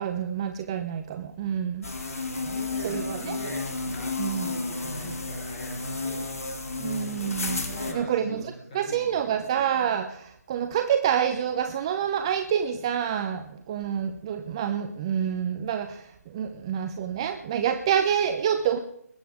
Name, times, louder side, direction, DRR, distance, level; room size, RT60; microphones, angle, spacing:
voice 1, 0.0-1.8 2.8-3.4 4.2-4.5 6.8-7.6 7.9-18.8, right 8 dB, 20° right, 8 dB, 0.6 m, -27 dB
sound 1, 1.8-7.9, left 3 dB, 60° left, 2.3 m, -32 dB
voice 2, 2.4-3.6 3.9-4.1 4.4-6.3 7.6-9.5, equal, 25° left, -4 dB, 5.6 m, -41 dB
20.5 x 9.1 x 4.8 m, 0.71 s
figure-of-eight pair, 155°, 9 cm